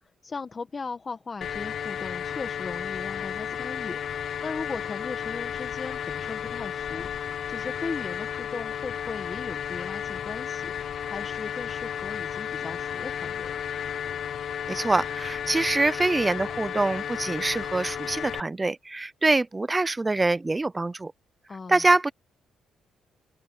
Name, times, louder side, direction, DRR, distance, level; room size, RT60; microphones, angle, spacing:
voice 1, 0.0-13.5 21.5-21.9, left 4 dB, 35° left, 1.4 m, -38 dB
sound 1, 1.4-18.4, left 9 dB, 60° left, 0.7 m, -33 dB
voice 2, 14.7-21.1 21.7-22.1, right 2 dB, 20° right, 0.6 m, -25 dB
open air
cardioid pair, 90°, 0 cm